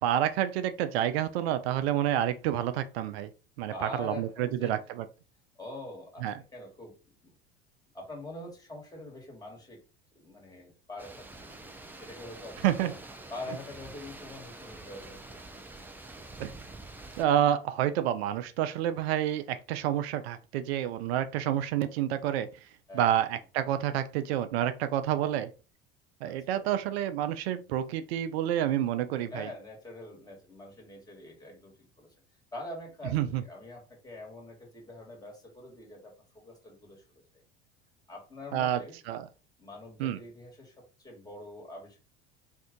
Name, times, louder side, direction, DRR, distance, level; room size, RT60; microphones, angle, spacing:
voice 1, 0.0-3.3 3.6-5.1 6.2-6.3 12.6-12.9 16.4-16.5 17.2-22.5 22.9-25.5 26.2-29.5 33.1-33.4 38.5-38.8 39.1-39.2 40.0-40.2, right 11 dB, 80° right, 0.5 m, -29 dB
voice 2, 3.7-4.9 5.5-7.0 7.2-7.3 7.9-9.8 10.1-11.7 12.0-13.0 13.3-15.6 22.9-23.2 26.2-26.7 29.3-32.1 32.5-37.4 38.1-39.0 39.6-42.0, left 2 dB, 10° left, 1.5 m, -45 dB
sound 1, 11.0-17.2, right 2 dB, 5° right, 0.4 m, -46 dB
2.6 x 2.4 x 3.7 m
hypercardioid pair, 80°, 31 cm